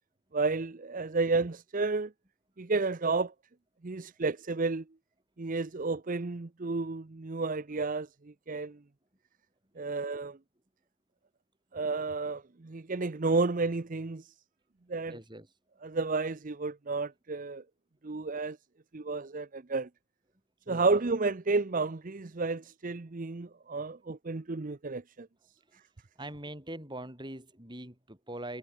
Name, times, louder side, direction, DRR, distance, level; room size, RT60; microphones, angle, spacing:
voice 1, 0.3-2.1 2.6-3.3 3.8-4.8 5.4-8.8 9.8-10.4 11.7-14.3 14.9-15.2 15.8-17.6 18.0-18.6 18.9-19.9 20.7-25.3, right 3 dB, 35° right, 0.7 m, -31 dB
voice 2, 15.1-15.5 20.7-20.8 25.7-25.8 26.2-28.6, right 1 dB, 20° right, 5.2 m, -42 dB
head